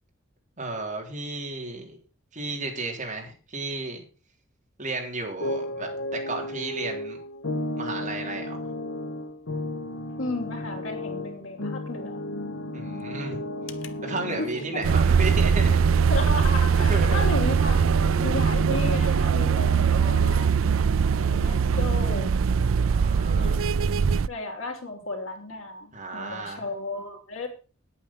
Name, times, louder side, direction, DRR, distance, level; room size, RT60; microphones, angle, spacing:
voice 1, 0.6-2.0 2.3-4.0 4.8-7.2 7.8-8.7 12.7-13.5 14.0-16.0 16.9-17.3 22.9-23.6 25.9-26.6, right 2 dB, 40° right, 1 dB, 3.6 m, -33 dB
sound 1, 2.5-2.9 5.3-20.3, left 1 dB, 65° left, 1.1 m, -35 dB
voice 2, 10.2-12.2 14.4-14.8 16.1-20.6 21.2-22.3 23.3-23.8 24.3-27.5, left 2 dB, 85° left, 2 dB, 3.2 m, -34 dB
sound 2, 14.8-24.3, right 6 dB, 85° right, 0.5 m, -21 dB
9.9 x 8.8 x 5.9 m, 0.36 s
head